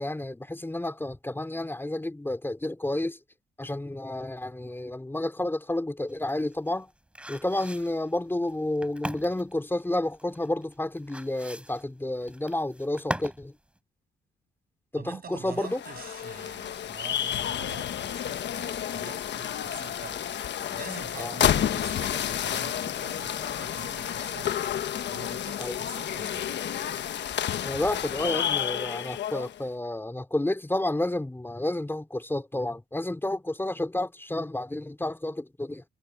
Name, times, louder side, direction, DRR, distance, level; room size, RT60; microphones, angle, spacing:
voice 1, 0.0-3.2 3.6-6.9 7.3-13.5 14.9-15.8 21.2-21.3 25.6-25.8 27.6-35.8, left 1 dB, 10° left, 3.5 m, -30 dB
sound 1, 6.1-13.5 13.8-13.9, right 1 dB, 5° right, 4.1 m, -39 dB
voice 2, 15.0-20.3 20.7-24.5 25.1-26.6, right 7 dB, 50° right, 7.9 m, -45 dB
sound 2, 15.5-29.6, left 10 dB, 65° left, 1.3 m, -30 dB
cardioid pair, 90°, 20 cm